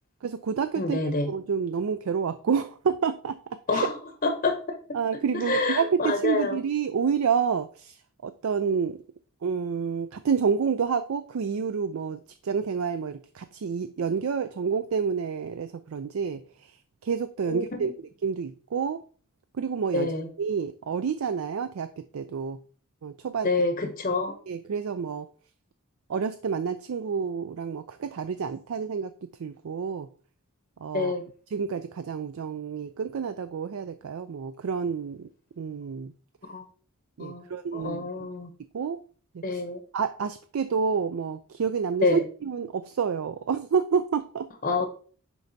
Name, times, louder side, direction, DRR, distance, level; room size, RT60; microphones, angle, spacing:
voice 1, 0.2-1.0 1.3-3.4 3.7-3.9 4.9-8.0 8.2-9.0 9.4-16.4 17.0-17.9 18.2-19.0 19.6-20.1 20.4-22.6 23.0-23.5 24.5-25.3 26.1-29.1 29.4-30.1 30.8-31.1 31.5-35.3 35.6-36.1 37.2-38.0 38.7-39.0 39.3-39.6 39.9-44.5, right 6 dB, 70° right, 11 dB, 0.4 m, -29 dB
voice 2, 0.8-1.3 3.7-3.9 4.2-4.6 5.3-6.6 17.5-17.9 19.9-20.3 23.4-24.4 30.9-31.2 36.5-36.6 37.2-37.5 37.7-38.5 39.4-39.8 42.0-42.2 44.6-44.9, left 3 dB, 40° left, 6 dB, 0.7 m, -27 dB
10.5 x 4.5 x 2.7 m, 0.42 s
head